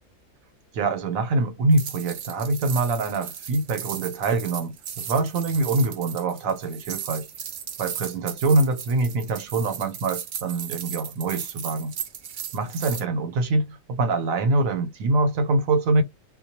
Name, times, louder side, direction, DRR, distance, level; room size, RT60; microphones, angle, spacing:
voice 1, 0.7-7.3 7.8-11.9 12.5-16.0, right 2 dB, 85° right, 1.1 m, -24 dB
sound 1, 1.7-13.0, right 8 dB, 60° right, 0.7 m, -36 dB
2.3 x 2.1 x 2.7 m
omnidirectional pair, 1.4 m